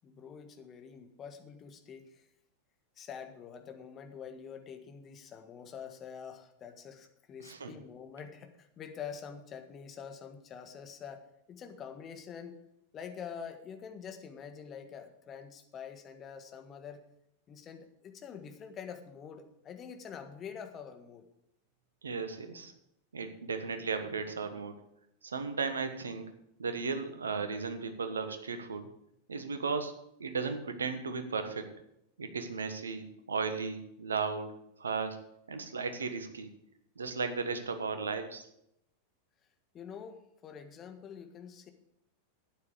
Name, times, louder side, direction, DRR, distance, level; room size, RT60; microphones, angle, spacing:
voice 1, 0.0-2.3 3.0-12.6 12.9-17.0 17.5-21.3 39.7-41.7, left 7 dB, 30° left, 7 dB, 1.5 m, -46 dB
voice 2, 7.4-7.7 22.0-22.7 23.1-24.7 25.2-26.3 26.6-28.9 29.3-29.9 30.2-31.7 32.2-36.5 37.0-38.5, right 5 dB, 70° right, 8 dB, 1.4 m, -35 dB
11.5 x 9.5 x 5.0 m, 0.78 s
figure-of-eight pair, 90°, 0 cm